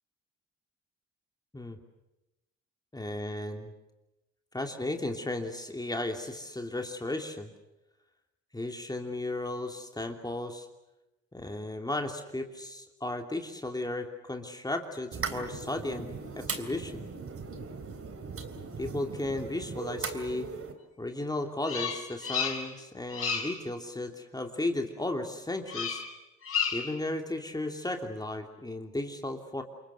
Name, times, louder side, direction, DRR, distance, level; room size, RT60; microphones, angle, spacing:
voice 1, 2.9-3.7 4.5-7.5 8.5-10.7 11.3-17.1 18.8-20.5 21.0-26.0 26.7-29.6, left 2 dB, 15° left, 4 dB, 3.0 m, -35 dB
sound 1, 15.1-20.7, right 5 dB, 50° right, 3.5 m, -39 dB
Bird vocalization bird call bird song, 21.6-22.8 23.1-23.6 25.7-26.1 26.4-27.0, left 6 dB, 45° left, 6.4 m, -32 dB
28.0 x 23.0 x 8.1 m, 0.96 s
cardioid pair, 90°, 30 cm